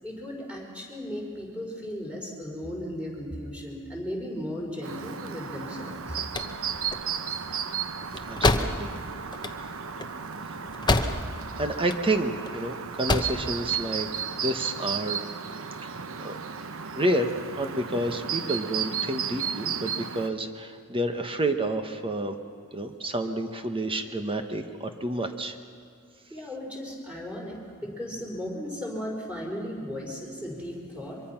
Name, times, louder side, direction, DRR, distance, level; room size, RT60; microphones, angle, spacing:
voice 1, 0.0-6.2 26.3-31.2, equal, 5° right, -2 dB, 5.0 m, -36 dB
Chirp tweet, 4.8-20.3, right 7 dB, 65° right, 0.9 m, -34 dB
sound 1, 6.1-11.5 11.8-12.5 12.9-13.5, left 2 dB, 20° left, 0.9 m, -28 dB
voice 2, 8.3-8.9 11.0-11.3 11.6-15.2 15.8-16.3 16.9-17.3 17.6-22.4 22.7-25.6, right 1 dB, 25° right, 7 dB, 1.2 m, -30 dB
24.0 x 23.5 x 5.9 m, 2.2 s
head